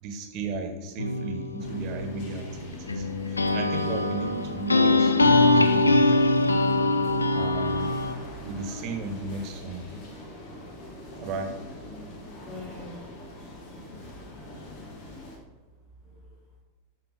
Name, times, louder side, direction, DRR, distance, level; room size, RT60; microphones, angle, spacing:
voice 1, 0.0-6.3 7.3-7.9 8.4-9.8 11.2-11.6, right 4 dB, 40° right, 5 dB, 1.4 m, -35 dB
sound 1, 1.0-8.1, left 2 dB, 80° left, 0.6 m, -23 dB
sound 2, 1.6-15.4, left 1 dB, 45° left, 1.7 m, -43 dB
voice 2, 12.4-14.2 16.0-16.4, left 2 dB, 10° left, -7 dB, 2.6 m, -47 dB
13.5 x 5.7 x 3.7 m, 1.3 s
figure-of-eight pair, 90°, 0 cm